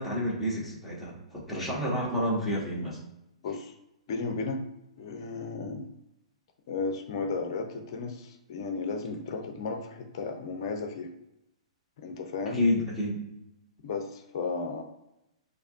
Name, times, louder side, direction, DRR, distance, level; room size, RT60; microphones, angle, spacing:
voice 1, 0.0-3.0 12.5-13.2, left 1 dB, ahead, -7 dB, 1.4 m, -29 dB
voice 2, 3.4-3.7 4.1-4.6 5.0-5.8 6.7-11.1 12.0-12.6 13.8-14.8, left 4 dB, 50° left, 4 dB, 0.6 m, -34 dB
4.2 x 2.6 x 2.5 m, 0.86 s
figure-of-eight pair, 115°, 3 cm